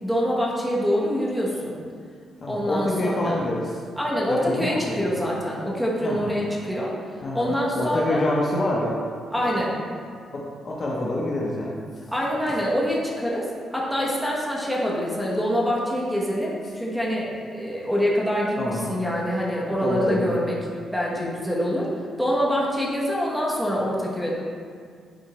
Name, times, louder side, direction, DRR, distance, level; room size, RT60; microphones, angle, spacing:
voice 1, 0.0-1.8 2.5-3.4 4.0-6.9 7.3-8.2 9.3-9.8 12.1-20.5 20.9-21.9 22.2-24.4, equal, 5° right, -5 dB, 1.0 m, -25 dB
voice 2, 2.4-3.8 4.3-5.1 6.0-6.3 7.2-9.0 9.4-9.6 10.3-11.7 18.6-18.8 19.8-20.3, left 1 dB, 30° left, -3 dB, 0.6 m, -27 dB
8.7 x 4.2 x 3.0 m, 2.1 s
cardioid pair, 165°, 0 cm